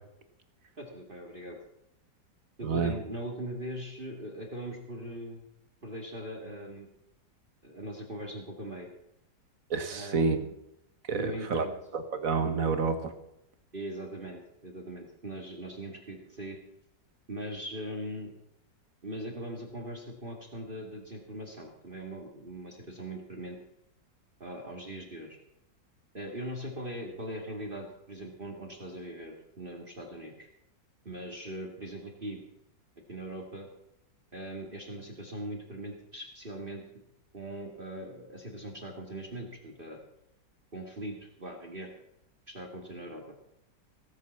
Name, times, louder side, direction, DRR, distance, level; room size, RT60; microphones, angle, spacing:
voice 1, 0.8-1.6 2.6-5.5 5.8-6.9 7.6-8.9 9.9-10.5 11.1-11.7 13.7-16.6 17.3-18.3 19.0-23.6 24.4-25.4 26.1-30.5 31.0-32.4 33.1-33.7 34.3-36.8 37.3-40.0 40.7-42.0 42.5-43.3, right 1 dB, 30° right, 2 dB, 2.4 m, -40 dB
voice 2, 2.6-2.9 9.7-10.4 11.1-11.7 11.9-13.1, right 4 dB, 50° right, 9 dB, 1.6 m, -29 dB
18.0 x 8.2 x 7.3 m, 0.80 s
omnidirectional pair, 1.9 m